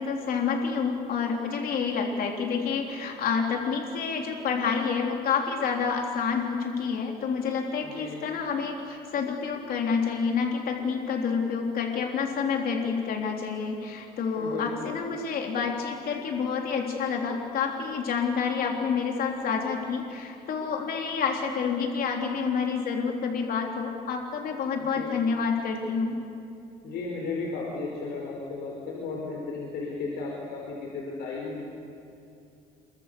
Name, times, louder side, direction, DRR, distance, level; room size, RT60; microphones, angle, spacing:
voice 1, 0.0-26.1, left 5 dB, 60° left, 1 dB, 3.5 m, -28 dB
voice 2, 7.8-8.2 14.4-15.0 24.8-25.1 26.8-31.6, left 3 dB, 80° left, -2 dB, 4.8 m, -34 dB
28.0 x 24.0 x 6.9 m, 2.6 s
cardioid pair, 110°, 17 cm